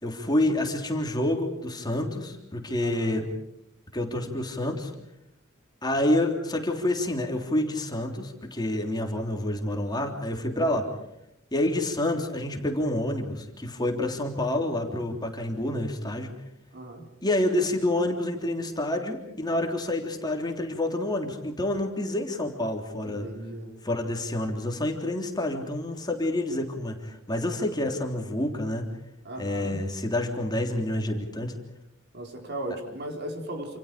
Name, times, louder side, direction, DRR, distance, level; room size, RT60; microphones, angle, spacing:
voice 1, 0.0-3.3 3.9-4.9 5.8-10.9 11.5-16.3 17.2-23.3 23.8-28.9 29.4-31.6, left 1 dB, 20° left, 2 dB, 3.5 m, -28 dB
voice 2, 2.8-3.2 10.6-10.8 16.7-17.1 23.0-23.9 29.2-29.8 32.1-33.8, right 1 dB, 55° right, 2 dB, 4.8 m, -37 dB
28.5 x 28.5 x 5.2 m, 0.81 s
head